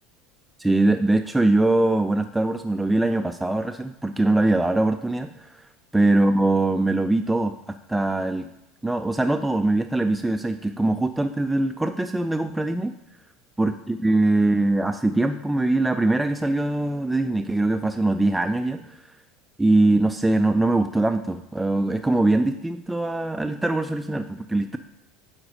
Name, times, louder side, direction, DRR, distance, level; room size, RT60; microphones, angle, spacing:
voice 1, 0.6-5.6 5.9-8.5 8.8-12.9 13.6-19.0 19.6-24.8, right 2 dB, 10° right, 7 dB, 0.3 m, -22 dB
9.4 x 4.0 x 6.2 m, 0.86 s
figure-of-eight pair, 70°, 0 cm